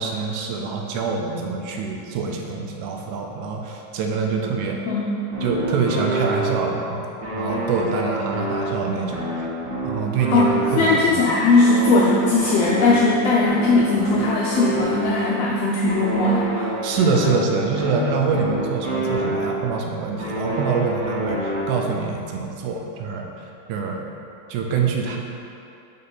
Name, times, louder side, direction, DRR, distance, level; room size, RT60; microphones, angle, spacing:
voice 1, 0.0-4.8 5.4-7.1 7.3-9.5 9.8-10.5 10.7-11.2 16.8-23.3 23.7-24.0 24.5-25.2, right 5 dB, 85° right, 1 dB, 2.1 m, -25 dB
sound 1, 5.3-6.9 7.2-11.2 11.5-15.4 15.9-19.8 20.2-22.0, right 1 dB, 45° right, 2.0 m, -27 dB
voice 2, 10.3-16.7, left 2 dB, 80° left, -4 dB, 1.4 m, -19 dB
5.7 x 5.4 x 3.9 m, 2.7 s
omnidirectional pair, 3.4 m